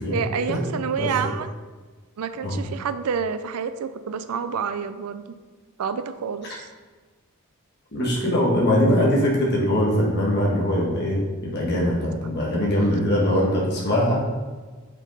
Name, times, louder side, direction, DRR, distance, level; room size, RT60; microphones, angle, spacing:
voice 1, 0.1-1.5 2.2-5.2 5.8-6.5 12.1-12.2, right 6 dB, 90° right, 11 dB, 0.4 m, -28 dB
voice 2, 7.9-14.3, equal, 50° left, -4 dB, 1.4 m, -22 dB
5.4 x 5.2 x 4.0 m, 1.4 s
head